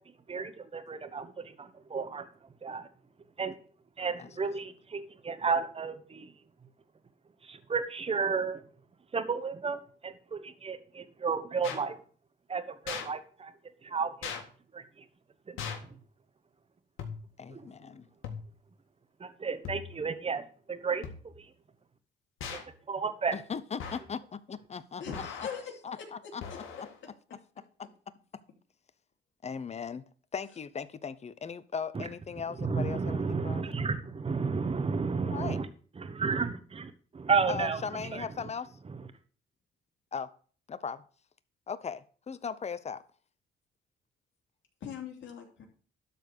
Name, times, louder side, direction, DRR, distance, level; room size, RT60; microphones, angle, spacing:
voice 1, 0.0-2.9 3.4-3.5 4.0-6.3 7.4-8.6 9.1-12.0 12.5-13.5 13.8-14.3 14.7-15.1 15.5-16.0 17.5-17.7 19.2-21.5 22.5-22.6 22.9-23.4 31.9-32.1 32.6-35.7 36.0-38.3 38.8-39.0, right 5 dB, 30° right, 1.2 m, -33 dB
sound 1, 11.6-11.8 12.9-13.1 14.2-14.4 15.6-15.9 17.0-17.4 18.2-18.6 19.6-20.1 21.0-21.5 22.4-22.7 23.8-24.2 25.1-25.6 26.4-26.9, left 7 dB, 85° left, 1.9 m, -40 dB
voice 2, 17.4-18.1 23.3-25.5 25.8-27.4 28.3-28.4 29.4-30.0 30.3-33.8 35.3-35.6 37.5-38.8 40.1-40.3 40.7-41.0 41.7-43.0, left 6 dB, 35° left, 0.8 m, -38 dB
voice 3, 25.0-26.0 44.8-45.7, left 7 dB, 70° left, 3.0 m, -41 dB
12.0 x 4.3 x 6.8 m
cardioid pair, 90°, 20 cm